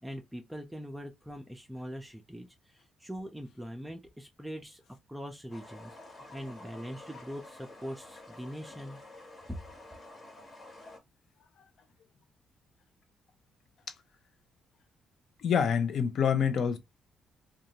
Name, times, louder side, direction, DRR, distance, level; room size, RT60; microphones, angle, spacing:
voice 1, 0.0-4.8 5.1-9.0 9.5-9.6, equal, 5° right, 0.5 m, -42 dB
sound 1, 5.5-11.0, left 2 dB, 35° left, 1.1 m, -50 dB
voice 2, 15.4-16.8, left 7 dB, 65° left, 0.6 m, -26 dB
2.6 x 2.3 x 2.9 m
cardioid pair, 90°, 0 cm